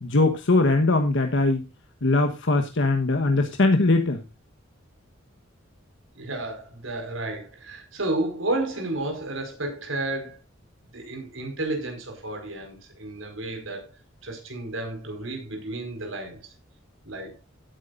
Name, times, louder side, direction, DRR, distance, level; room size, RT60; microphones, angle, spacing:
voice 1, 0.0-1.6 2.0-4.2, left 2 dB, 65° left, 1.3 m, -21 dB
voice 2, 6.1-10.4 10.9-13.8 14.2-16.5 17.0-17.4, right 2 dB, 70° right, 5.0 m, -32 dB
17.0 x 9.3 x 2.6 m
head